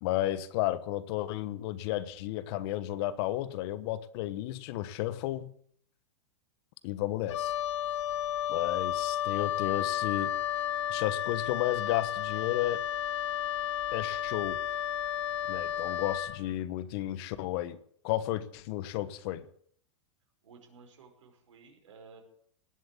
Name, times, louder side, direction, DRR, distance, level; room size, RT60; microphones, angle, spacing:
voice 1, 0.0-5.5 6.8-7.5 8.5-10.3 10.9-12.8 13.9-14.6 15.5-17.8 18.0-19.5, left 14 dB, 55° left, 15 dB, 1.3 m, -33 dB
Wind instrument woodwind instrument, 7.3-16.4, left 11 dB, 70° left, 1.1 m, -32 dB
Wind instrument woodwind instrument 2, 10.1-16.6, right 12 dB, 55° right, 3.7 m, -57 dB
voice 2, 20.4-22.2, right 5 dB, 85° right, 3 dB, 5.3 m, -54 dB
18.5 x 7.8 x 8.6 m, 0.63 s
hypercardioid pair, 120°, 16 cm